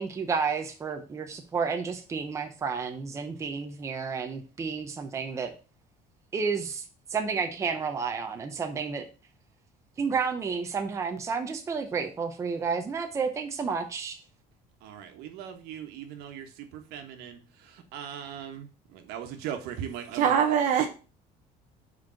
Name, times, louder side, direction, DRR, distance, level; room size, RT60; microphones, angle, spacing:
voice 1, 0.0-5.5 6.3-6.8 7.1-9.0 10.0-14.2, right 5 dB, 20° right, 0.7 m, -31 dB
voice 2, 14.8-20.4, right 9 dB, 80° right, 1.3 m, -40 dB
voice 3, 20.1-20.9, right 8 dB, 50° right, 0.8 m, -22 dB
5.1 x 4.6 x 5.7 m
cardioid pair, 170°, 16 cm